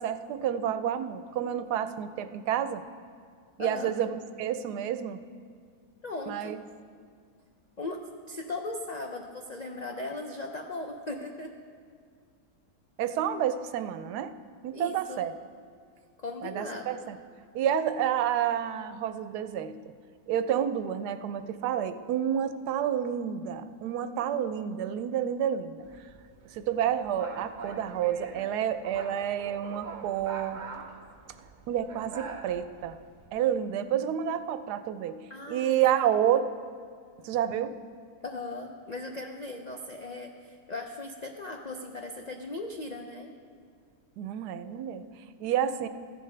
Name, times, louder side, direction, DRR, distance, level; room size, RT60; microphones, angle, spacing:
voice 1, 0.0-2.8 3.6-5.2 6.3-6.6 13.0-14.3 14.6-15.3 16.4-17.2 17.5-19.8 20.3-25.8 26.5-30.6 31.7-33.0 33.3-36.5 37.2-37.7 44.2-45.9, right 9 dB, 85° right, 11 dB, 1.1 m, -29 dB
voice 2, 3.6-3.9 6.0-6.6 7.8-11.6 14.7-15.3 16.2-16.8 35.3-36.1 38.2-43.3, left 2 dB, 70° left, 2 dB, 0.4 m, -38 dB
sound 1, 25.8-33.3, right 4 dB, 50° right, 0.5 m, -44 dB
15.0 x 11.0 x 3.3 m, 2.2 s
omnidirectional pair, 1.7 m